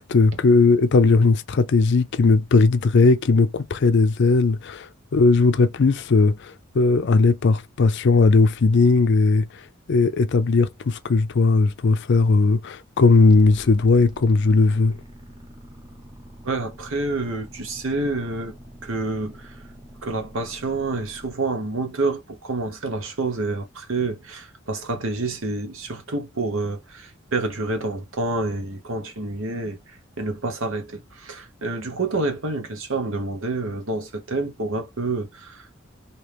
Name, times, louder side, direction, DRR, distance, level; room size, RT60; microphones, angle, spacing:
voice 1, 0.0-9.5 9.9-15.0, left 3 dB, 60° left, 0.5 m, -18 dB
sound 1, 13.3-21.3, equal, 25° right, 1.0 m, -45 dB
voice 2, 16.4-18.5 18.8-19.6 20.0-35.8, right 3 dB, 80° right, 0.9 m, -28 dB
3.0 x 2.8 x 3.3 m
head